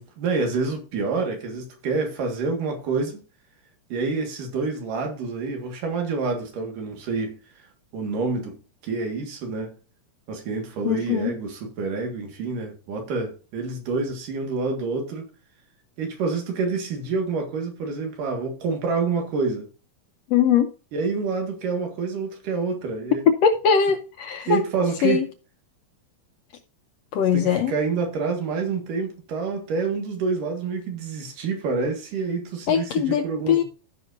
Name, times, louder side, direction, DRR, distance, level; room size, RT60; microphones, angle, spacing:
voice 1, 0.0-3.2 3.9-7.4 7.9-8.6 8.8-9.7 10.3-15.3 16.0-19.7 20.9-23.3 24.5-25.3 27.3-33.6, right 4 dB, 85° right, 3.5 m, -27 dB
voice 2, 10.8-11.4 20.3-20.7 23.3-24.6 25.0-25.2 27.1-27.7 32.7-33.6, left 7 dB, 80° left, 1.5 m, -21 dB
15.0 x 5.8 x 2.6 m
omnidirectional pair, 3.6 m